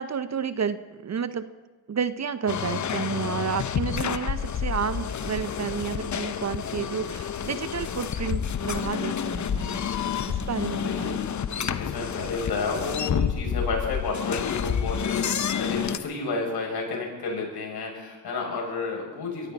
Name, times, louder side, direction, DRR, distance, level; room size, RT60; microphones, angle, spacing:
voice 1, 0.0-1.5 1.9-9.8 10.3-11.2, right 7 dB, 40° right, 13 dB, 0.8 m, -31 dB
sound 1, 2.5-16.0, left 8 dB, 40° left, 0.9 m, -29 dB
voice 2, 10.3-11.1 11.4-19.5, left 3 dB, 65° left, -1 dB, 6.6 m, -31 dB
22.5 x 15.0 x 4.2 m, 1.3 s
supercardioid pair, 60°, 43 cm